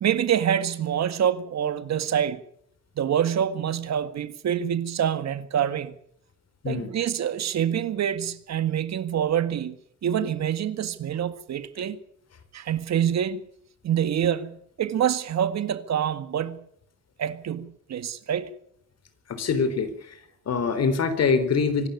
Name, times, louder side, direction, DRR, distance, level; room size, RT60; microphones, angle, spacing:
voice 1, 0.0-2.4 3.0-6.0 6.7-12.0 12.5-13.4 13.8-16.7 17.2-18.5, right 9 dB, 60° right, 1.9 m, -26 dB
voice 2, 19.3-20.2 20.5-21.9, left 5 dB, 55° left, 4.1 m, -24 dB
25.0 x 12.5 x 9.7 m
cardioid pair, 90°, 30 cm